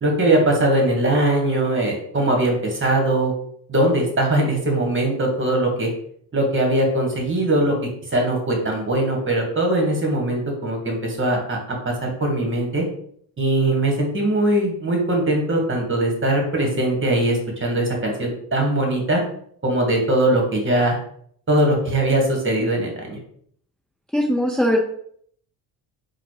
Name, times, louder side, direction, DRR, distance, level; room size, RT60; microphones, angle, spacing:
voice 1, 0.0-3.3 3.7-5.9 6.3-7.7 8.1-12.8 13.4-19.2 19.6-21.0 21.5-23.2, right 1 dB, 30° right, 1 dB, 1.7 m, -21 dB
voice 2, 24.1-24.8, equal, ahead, -2 dB, 0.6 m, -19 dB
4.1 x 2.5 x 4.7 m, 0.64 s
supercardioid pair, 90°, 41 cm